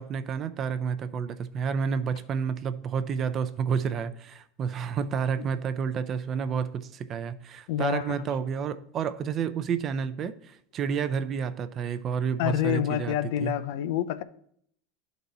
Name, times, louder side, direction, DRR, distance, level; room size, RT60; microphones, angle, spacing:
voice 1, 0.0-13.2 13.4-13.5, right 6 dB, 30° right, 0.4 m, -30 dB
voice 2, 7.7-8.3 12.4-14.2, left 11 dB, 65° left, 0.5 m, -28 dB
11.5 x 4.0 x 4.1 m
supercardioid pair, 145°, 0 cm